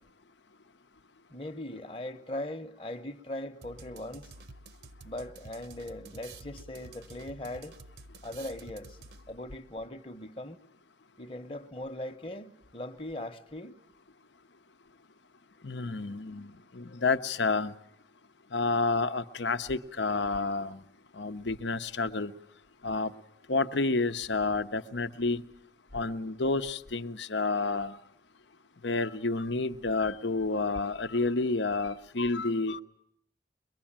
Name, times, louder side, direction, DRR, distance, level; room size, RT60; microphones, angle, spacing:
voice 1, 1.3-4.3 5.0-7.8 8.2-9.0 9.3-10.6 11.2-13.8, left 1 dB, 30° left, 1.0 m, -40 dB
sound 1, 3.6-9.5, right 3 dB, 70° right, 0.9 m, -50 dB
voice 2, 15.6-17.7 18.5-20.8 21.2-22.3 22.8-23.1 23.5-25.4 25.9-28.0 28.8-32.8, left 3 dB, 85° left, 0.9 m, -30 dB
23.0 x 22.5 x 8.8 m
head